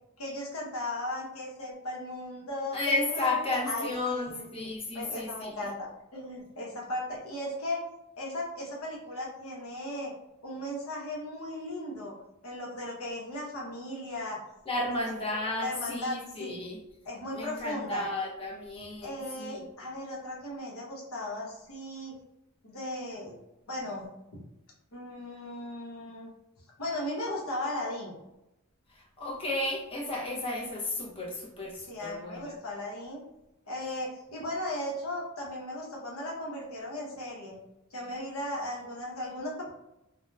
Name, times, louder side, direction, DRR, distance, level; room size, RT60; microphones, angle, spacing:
voice 1, 0.2-7.8 8.2-10.1 10.4-12.1 12.4-14.4 14.8-14.9 15.6-16.5 17.0-18.0 19.0-22.2 22.6-23.4 23.7-24.1 24.3-24.4 24.9-26.3 26.8-28.2 31.8-33.2 33.7-37.6 37.9-39.7, left 1 dB, 80° left, -3 dB, 0.8 m, -36 dB
voice 2, 2.7-5.5 14.7-16.8 17.3-19.7 29.2-32.5, left 2 dB, 25° left, -3 dB, 0.6 m, -33 dB
2.8 x 2.1 x 2.2 m, 0.91 s
head